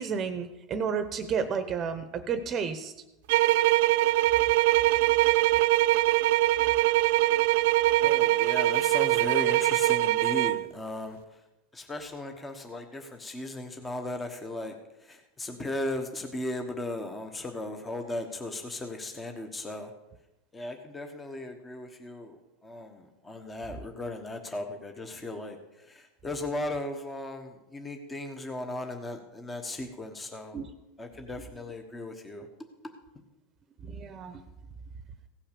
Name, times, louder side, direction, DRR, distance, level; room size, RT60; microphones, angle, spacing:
voice 1, 0.0-2.9 30.5-30.7 33.8-34.4, right 6 dB, 30° right, 9 dB, 0.9 m, -31 dB
sound 1, 3.3-10.7, right 17 dB, 70° right, 0.3 m, -23 dB
voice 2, 8.0-11.2 11.7-14.7 15.0-19.9 20.5-30.6 31.0-32.5, left 1 dB, 15° left, 5 dB, 1.1 m, -37 dB
16.0 x 5.7 x 6.8 m, 0.98 s
supercardioid pair, 125°, 0 cm